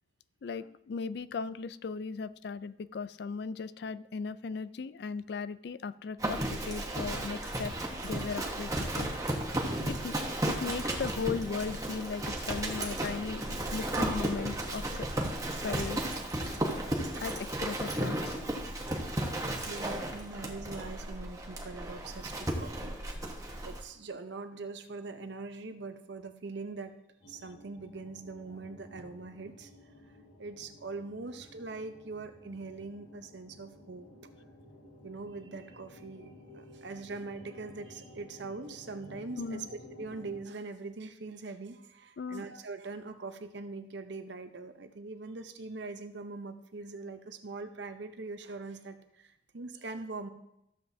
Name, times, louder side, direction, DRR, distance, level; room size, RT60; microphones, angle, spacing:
voice 1, 0.4-7.7 8.0-9.3 9.8-10.1 10.5-15.1 15.6-16.1 17.2-18.4 39.4-39.7 42.2-42.4, left 5 dB, 60° left, 16 dB, 0.3 m, -37 dB
Livestock farm animals working animals, 6.2-23.8, right 1 dB, 15° right, 1.1 m, -34 dB
voice 2, 19.7-23.0 23.6-27.0 27.3-29.7 30.4-34.1 35.0-50.3, right 3 dB, 65° right, 8 dB, 0.8 m, -42 dB
sound 1, 27.2-40.4, left 1 dB, 85° left, 1.9 m, -54 dB
14.0 x 7.5 x 2.7 m, 0.82 s
head